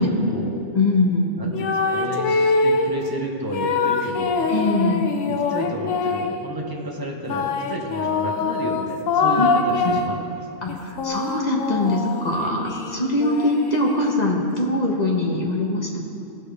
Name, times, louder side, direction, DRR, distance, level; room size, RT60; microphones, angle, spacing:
voice 1, 0.0-0.6 1.4-4.5 5.3-10.7, right 1 dB, 20° right, -1 dB, 1.0 m, -31 dB
voice 2, 0.7-1.3 4.5-5.0 9.4-9.5 9.8-9.9 10.6-16.0, left 2 dB, 35° left, -1 dB, 1.3 m, -22 dB
sound 1, 1.5-3.0 3.5-6.4 7.3-10.2 10.7-14.3, left 4 dB, 90° left, 1.1 m, -24 dB
16.0 x 6.6 x 3.4 m, 2.5 s
omnidirectional pair, 1.3 m